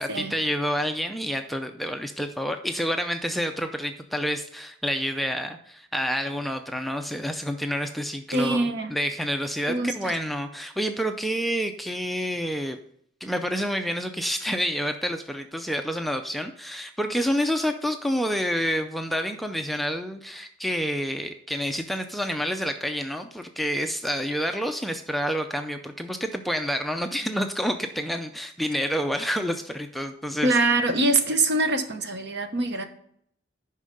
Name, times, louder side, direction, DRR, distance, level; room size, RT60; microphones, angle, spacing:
voice 1, 0.0-12.8 13.2-30.6, equal, ahead, 6 dB, 0.4 m, -28 dB
voice 2, 8.3-8.9 9.7-10.1 30.4-32.8, right 2 dB, 60° right, 7 dB, 1.0 m, -24 dB
9.8 x 5.6 x 5.3 m, 0.68 s
head